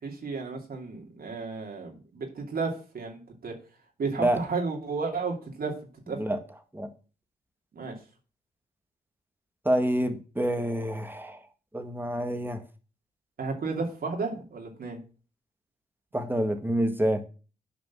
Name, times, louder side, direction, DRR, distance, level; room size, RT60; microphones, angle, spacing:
voice 1, 0.0-3.5 4.0-5.7 6.1-6.2 7.7-8.0 13.4-15.0, right 4 dB, 60° right, 1 dB, 2.8 m, -33 dB
voice 2, 9.7-11.4 11.7-12.6 16.1-17.2, right 1 dB, 10° right, 7 dB, 2.0 m, -27 dB
7.9 x 5.1 x 7.3 m, 0.36 s
supercardioid pair, 50°, 17 cm